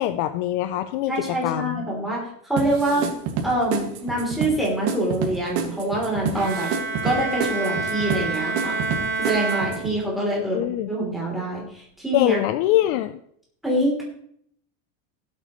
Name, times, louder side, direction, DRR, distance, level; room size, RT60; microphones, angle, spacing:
voice 1, 0.0-1.9 2.9-3.1 10.3-10.9 12.1-13.2, left 13 dB, 45° left, 11 dB, 0.5 m, -24 dB
voice 2, 1.1-3.0 3.4-6.7 7.0-8.8 9.2-10.6 10.9-12.4 13.6-14.0, right 1 dB, ahead, -5 dB, 3.2 m, -25 dB
sound 1, 2.6-9.9, right 6 dB, 80° right, 2.1 m, -29 dB
Bowed string instrument, 6.3-10.4, right 3 dB, 65° right, 2.8 m, -28 dB
17.5 x 8.2 x 3.1 m, 0.67 s
cardioid pair, 170°, 37 cm